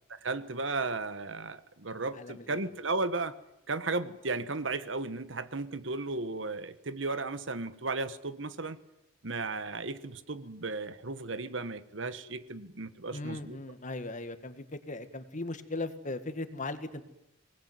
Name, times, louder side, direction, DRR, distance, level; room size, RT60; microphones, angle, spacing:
voice 1, 0.1-3.4 3.7-8.8 9.2-13.6, right 3 dB, 65° right, 13 dB, 1.3 m, -35 dB
voice 2, 2.1-2.6 13.1-17.0, left 2 dB, 40° left, 10 dB, 1.9 m, -38 dB
23.5 x 19.5 x 9.5 m, 0.85 s
head